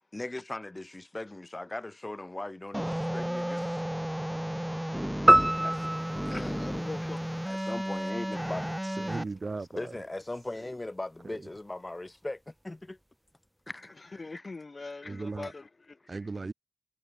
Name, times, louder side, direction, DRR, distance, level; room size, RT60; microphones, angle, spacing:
voice 1, 0.1-3.8 5.6-5.9 6.3-6.6 7.5-8.6 9.7-13.0 13.7-14.5 15.1-15.2, left 2 dB, 35° left, 3.3 m, -39 dB
sound 1, 2.7-9.2, equal, 5° right, 0.3 m, -33 dB
sound 2, 5.3-7.7, right 1 dB, 20° right, 0.9 m, -25 dB
voice 2, 5.4-5.7 6.2-7.2 14.2-16.0, left 3 dB, 60° left, 0.8 m, -42 dB
voice 3, 8.9-10.0 11.3-11.5 15.0-15.5 16.1-16.5, right 3 dB, 65° right, 2.4 m, -37 dB
wide cardioid pair, 50°, 0 cm